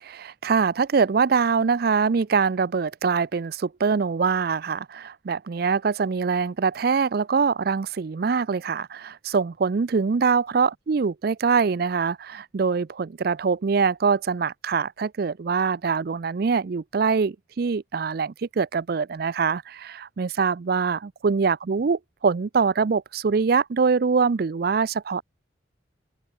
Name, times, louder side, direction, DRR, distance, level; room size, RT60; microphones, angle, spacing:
voice 1, 0.0-25.2, right 5 dB, 50° right, 0.4 m, -24 dB
open air
head